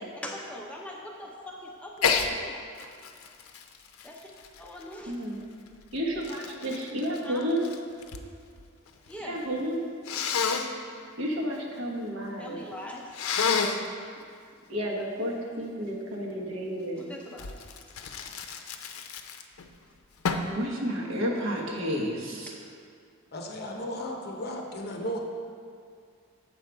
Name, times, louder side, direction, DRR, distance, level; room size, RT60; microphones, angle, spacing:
voice 1, 0.0-2.7 4.0-4.3 4.6-5.1 7.2-7.5 9.1-9.4 12.4-13.8 17.0-17.5, left 1 dB, 5° left, -1 dB, 0.5 m, -42 dB
Sneeze, 2.0-2.3 2.8-5.1 5.8-8.3 8.6-9.2 10.1-10.7 13.1-13.9 17.4-19.7 20.2-20.6, left 5 dB, 85° left, 0.5 m, -30 dB
voice 2, 5.1-5.4 5.9-7.6 9.2-9.8 11.2-12.6 14.7-17.1 20.5-22.5, equal, 70° right, -2 dB, 1.2 m, -31 dB
voice 3, 23.3-25.2, equal, 50° left, 1 dB, 0.8 m, -35 dB
7.5 x 5.2 x 4.6 m, 2.3 s
head